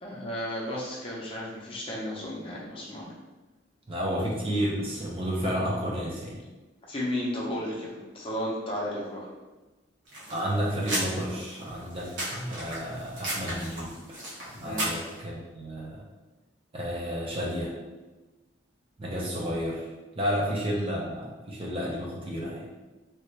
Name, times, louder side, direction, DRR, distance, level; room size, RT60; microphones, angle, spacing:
voice 1, 0.0-3.1 6.9-9.3 14.6-15.0, left 1 dB, 30° left, -4 dB, 0.6 m, -33 dB
voice 2, 3.9-6.4 10.3-14.2 14.6-16.0 16.7-17.7 19.0-19.9 20.2-22.7, equal, 30° right, -4 dB, 0.6 m, -31 dB
sound 1, 10.1-15.2, right 1 dB, 70° right, 1.1 m, -35 dB
3.2 x 2.5 x 3.1 m, 1.2 s
head